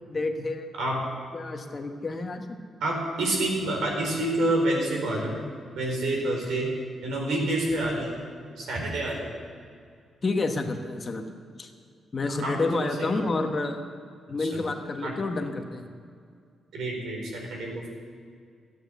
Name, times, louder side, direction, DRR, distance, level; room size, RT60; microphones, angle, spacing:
voice 1, 0.1-0.7 1.3-2.4 10.2-11.3 11.6-11.7 12.1-13.8 14.3-15.9, left 3 dB, 30° left, 4 dB, 1.2 m, -29 dB
voice 2, 2.8-5.4 5.8-6.7 7.0-8.1 8.6-9.3 12.4-13.3 14.4-14.6 15.0-15.2 16.7-17.9, right 1 dB, 90° right, 0 dB, 4.6 m, -28 dB
14.0 x 9.3 x 8.0 m, 2.2 s
cardioid pair, 150°, 0 cm